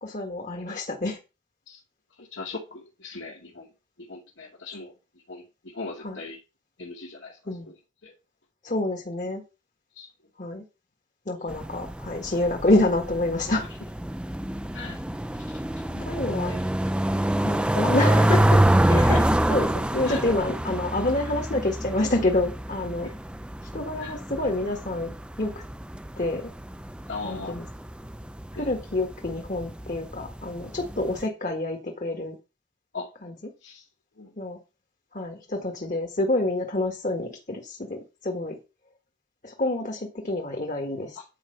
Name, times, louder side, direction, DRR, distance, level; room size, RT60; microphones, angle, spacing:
voice 1, 0.0-1.2 6.0-6.2 7.5-7.7 8.6-9.4 10.4-10.6 11.3-13.6 14.8-15.0 16.0-16.5 17.3-18.6 18.9-23.1 23.7-25.6 26.2-26.5 27.2-27.7 28.5-32.4 33.2-33.3 34.4-34.6 35.1-38.6 39.4-41.2, left 2 dB, 40° left, 2 dB, 1.7 m, -28 dB
voice 2, 2.2-3.7 4.1-4.9 5.3-6.4 6.8-7.4 7.6-7.7 8.0-8.1 9.9-10.1 14.7-15.0 15.5-16.7 18.9-19.4 20.1-20.2 23.0-23.1 24.0-24.1 27.1-27.6 28.6-28.7 32.9-33.1 33.6-33.8 34.2-34.3 41.2-41.3, left 3 dB, 75° left, -2 dB, 2.4 m, -38 dB
sound 1, 11.5-31.2, right 1 dB, 5° right, 0.5 m, -26 dB
10.0 x 4.9 x 6.7 m, 0.29 s
head